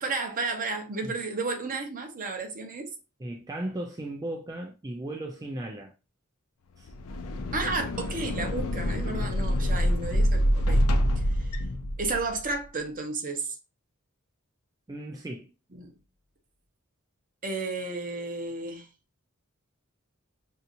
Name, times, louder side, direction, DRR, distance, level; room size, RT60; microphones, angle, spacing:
voice 1, 0.0-2.9 7.5-10.9 11.2-11.5 12.0-13.6 15.7-15.9 17.4-18.9, right 3 dB, 40° right, 0.8 m, -32 dB
voice 2, 3.2-5.9 6.8-6.9 14.9-15.5, right 1 dB, 15° right, 0.4 m, -36 dB
sound 1, 6.8-12.4, equal, 80° left, 0.5 m, -26 dB
5.5 x 2.7 x 2.5 m
head